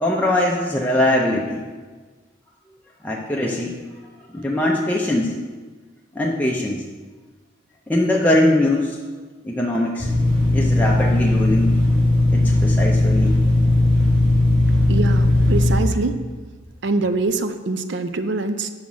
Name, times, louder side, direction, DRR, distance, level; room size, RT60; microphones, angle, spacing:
voice 1, 0.0-1.6 3.0-3.8 4.3-5.3 6.1-6.8 7.9-9.0 9.4-10.1 10.5-11.7 12.3-13.4, left 1 dB, 10° left, -3 dB, 0.5 m, -21 dB
sound 1, 10.0-15.7, left 1 dB, 20° right, 2.4 m, -17 dB
voice 2, 14.9-16.1 16.8-18.7, right 3 dB, 60° right, 10 dB, 0.4 m, -24 dB
5.7 x 4.9 x 6.0 m, 1.4 s
head